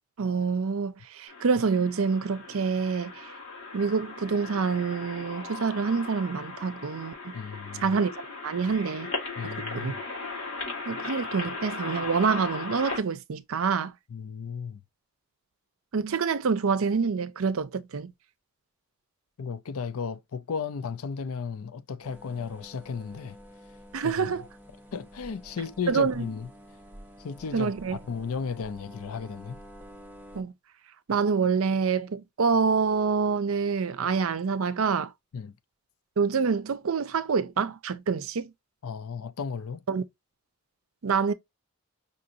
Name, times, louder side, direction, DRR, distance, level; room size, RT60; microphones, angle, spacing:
voice 1, 0.2-3.1 3.7-7.3 7.8-8.1 8.4-9.1 9.7-9.9 10.9-13.9 15.9-18.1 23.9-24.4 25.9-26.3 27.5-28.0 30.3-30.5 31.1-35.1 36.2-38.5 39.9-40.0 41.0-41.3, right 5 dB, 75° right, 0.5 m, -26 dB
sound 1, 1.3-13.0, left 3 dB, 65° left, 2.0 m, -37 dB
voice 2, 7.3-8.0 9.4-10.0 14.1-14.8 19.4-23.4 24.0-24.3 24.9-26.5 27.2-29.6 35.3-35.5 38.8-39.8, left 6 dB, 80° left, 0.5 m, -34 dB
sound 2, 22.0-30.4, equal, 10° right, 0.8 m, -49 dB
5.4 x 2.5 x 2.7 m
head